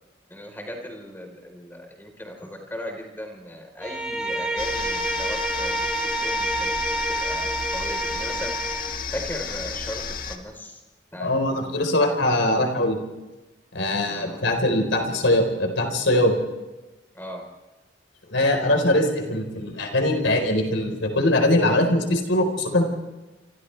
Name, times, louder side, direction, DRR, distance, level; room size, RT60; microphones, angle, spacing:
voice 1, 0.3-5.8 6.2-6.7 7.2-8.5 9.1-10.0 10.3-10.8 11.1-11.8 14.0-14.4 17.1-17.4, left 1 dB, 10° left, 2 dB, 4.2 m, -37 dB
Bowed string instrument, 3.8-9.0, right 1 dB, 5° right, 3.7 m, -28 dB
sound 1, 4.6-10.4, left 5 dB, 50° left, 1.7 m, -33 dB
voice 2, 11.2-13.0 13.7-16.3 18.3-22.9, left 1 dB, 85° left, 4 dB, 4.5 m, -22 dB
29.5 x 25.5 x 3.4 m, 1.1 s
head